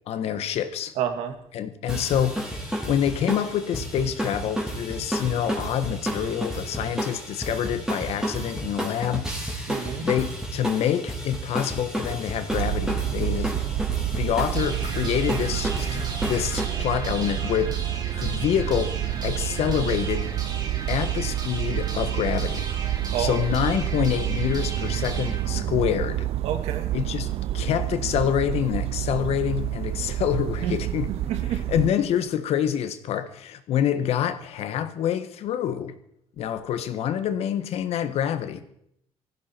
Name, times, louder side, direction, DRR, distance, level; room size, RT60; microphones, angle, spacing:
voice 1, 0.1-0.9 1.5-2.6 2.9-9.5 10.0-13.6 14.1-17.8 18.2-20.3 20.9-22.7 23.2-26.3 26.9-27.3 27.5-31.1 31.5-35.9 36.4-38.6, left 9 dB, 70° left, 1.5 m, -26 dB
voice 2, 1.0-1.3 9.7-10.1 23.1-23.4 26.4-26.9 30.6-30.7 31.3-31.6, right 9 dB, 85° right, 2.1 m, -28 dB
sound 1, 1.9-16.7, right 1 dB, 5° right, 3.9 m, -31 dB
sound 2, 12.5-31.9, right 13 dB, 65° right, 0.6 m, -29 dB
sound 3, 14.5-26.5, right 4 dB, 40° right, 3.3 m, -36 dB
18.5 x 15.0 x 4.5 m
cardioid pair, 125°, 11 cm